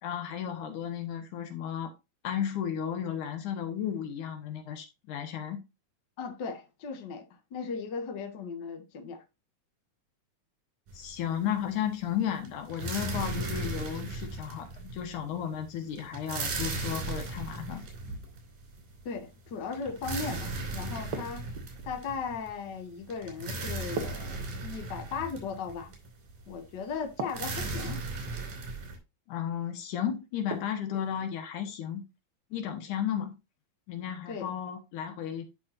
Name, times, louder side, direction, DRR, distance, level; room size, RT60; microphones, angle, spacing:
voice 1, 0.0-1.9 2.2-5.6 10.9-17.9 29.3-32.0 32.5-33.3 33.9-35.4, left 9 dB, 75° left, 2.7 m, -34 dB
voice 2, 6.2-9.2 19.0-21.5 21.8-24.4 24.6-25.9 26.5-28.0 34.3-34.5, left 5 dB, 45° left, 1.7 m, -37 dB
sound 1, 10.9-11.5 11.8-29.0, right 2 dB, 80° right, 4.2 m, -37 dB
sound 2, 21.1-21.9 24.0-25.0 27.2-27.9 30.5-31.1, right 4 dB, 55° right, 1.2 m, -39 dB
11.0 x 5.6 x 2.5 m
omnidirectional pair, 3.5 m